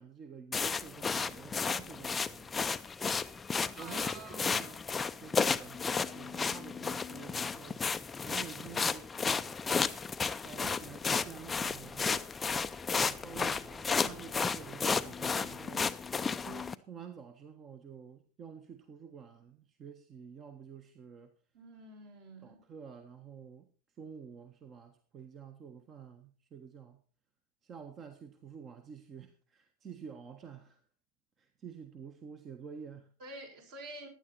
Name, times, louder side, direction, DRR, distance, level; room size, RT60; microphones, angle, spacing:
voice 1, 0.0-2.5 3.8-4.8 5.2-9.6 10.4-12.4 12.9-15.9 16.4-21.3 22.4-23.7 24.0-27.0 27.6-30.8 31.4-33.1, right 7 dB, 25° right, 1.4 m, -49 dB
sound 1, 0.5-16.7, left 5 dB, 15° left, 0.6 m, -33 dB
voice 2, 3.8-4.8 21.5-22.6 33.2-34.1, right 2 dB, 50° right, 6.0 m, -48 dB
16.5 x 11.0 x 4.3 m
figure-of-eight pair, 90°, 0 cm